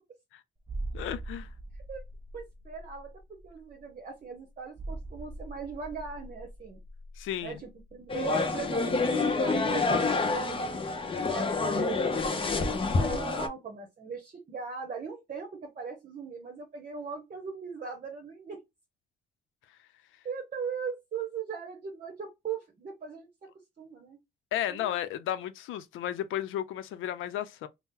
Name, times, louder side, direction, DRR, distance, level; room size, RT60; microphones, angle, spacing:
sound 1, 0.6-9.1 9.3-9.5, right 2 dB, 20° right, 0.4 m, -42 dB
voice 1, 0.9-1.5 7.2-7.6 24.5-27.7, left 11 dB, 85° left, 0.5 m, -33 dB
voice 2, 2.3-3.1 3.4-6.8 7.4-10.7 11.3-18.6 20.2-23.3 23.8-24.2 24.7-24.9, right 6 dB, 40° right, 0.8 m, -39 dB
sound 2, 8.1-13.5, left 3 dB, 25° left, 0.7 m, -28 dB
2.8 x 2.0 x 3.6 m
cardioid pair, 90°, 20 cm